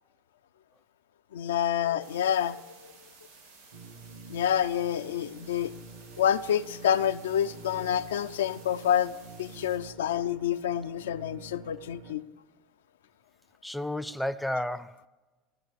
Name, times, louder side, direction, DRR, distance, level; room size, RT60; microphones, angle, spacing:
voice 1, 1.3-2.6 4.3-5.7 6.2-9.1 9.4-12.2, left 9 dB, 70° left, 0.3 m, -28 dB
sound 1, 2.0-9.8, right 4 dB, 80° right, 2.7 m, -54 dB
sound 2, 3.7-12.2, right 3 dB, 65° right, 1.0 m, -48 dB
voice 2, 13.6-15.1, left 1 dB, 5° left, 0.4 m, -32 dB
15.0 x 6.1 x 6.7 m
figure-of-eight pair, 70°, 0 cm